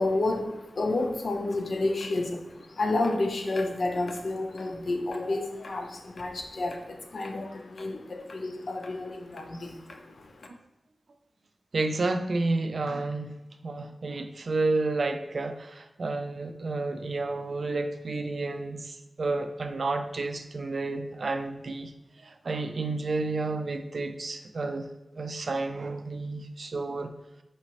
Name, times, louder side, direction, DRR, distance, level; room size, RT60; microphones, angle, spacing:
voice 1, 0.0-10.3, left 2 dB, 70° left, 0.6 m, -30 dB
voice 2, 11.7-21.9 22.2-24.9 25.2-27.1, right 3 dB, 60° right, 0.4 m, -31 dB
5.0 x 3.0 x 2.9 m
wide cardioid pair, 90°, 0 cm